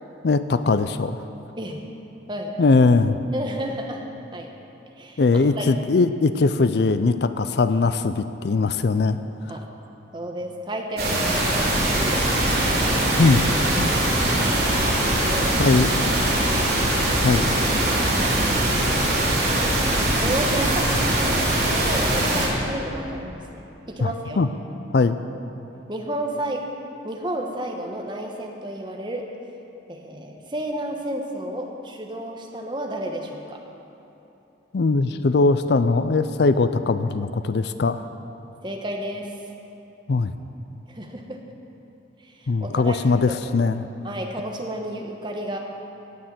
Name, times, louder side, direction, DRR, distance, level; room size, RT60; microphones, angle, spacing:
voice 1, 0.2-1.2 2.6-3.2 5.2-9.2 13.2-13.4 13.8-13.9 15.6-16.1 17.2-17.5 24.0-24.1 24.4-24.5 24.9-25.2 34.7-38.0 40.1-40.3 42.5-43.9, left 3 dB, 60° left, 11 dB, 0.5 m, -20 dB
voice 2, 3.3-4.1 4.3-4.5 4.9-5.7 9.5-9.7 10.1-12.3 15.0-15.7 18.3-18.6 20.0-24.4 25.9-26.6 27.0-29.3 29.9-33.6 38.6-39.3 40.9-41.4 42.2-43.4 44.0-45.6, right 1 dB, 25° right, 1 dB, 1.3 m, -32 dB
sound 1, 11.0-22.5, right 1 dB, 55° right, 3.3 m, -21 dB
18.0 x 6.6 x 7.6 m, 3.0 s
head